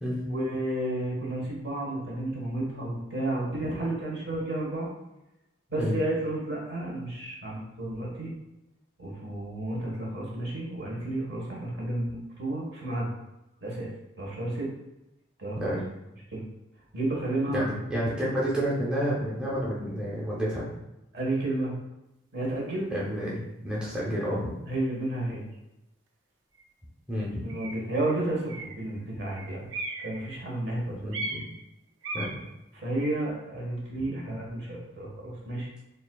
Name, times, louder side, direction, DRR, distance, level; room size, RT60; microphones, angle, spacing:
voice 1, 0.3-4.9 5.7-8.3 9.0-13.1 13.6-13.9 14.2-14.7 15.4-15.7 16.3-16.4 16.9-17.8 21.1-21.7 22.3-22.9 24.7-25.4 27.4-29.6 30.0-31.0 32.8-35.7, right 1 dB, 60° right, -3 dB, 1.3 m, -31 dB
voice 2, 17.5-20.7 22.9-24.4 27.1-27.4 31.0-31.4 32.1-32.3, equal, 5° right, -7 dB, 0.7 m, -30 dB
sound 1, 25.5-25.6 26.5-26.6 27.5-27.8 28.5-28.9 29.3-30.5 31.1-31.6 32.0-32.5, right 2 dB, 85° right, 0.6 m, -37 dB
6.9 x 2.5 x 2.3 m, 0.94 s
head